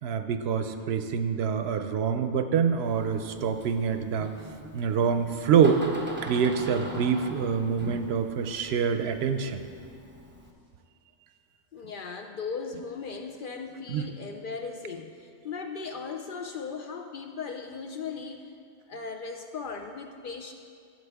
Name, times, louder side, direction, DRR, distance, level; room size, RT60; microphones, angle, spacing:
voice 1, 0.0-4.3 4.7-5.9 6.2-9.6 13.9-14.0, right 6 dB, 70° right, 8 dB, 0.8 m, -26 dB
Door, 2.8-10.5, right 1 dB, 10° right, 0.7 m, -43 dB
voice 2, 11.7-18.5 18.9-20.5, left 5 dB, 60° left, 4 dB, 0.6 m, -37 dB
13.5 x 7.9 x 3.5 m, 2.3 s
omnidirectional pair, 1.2 m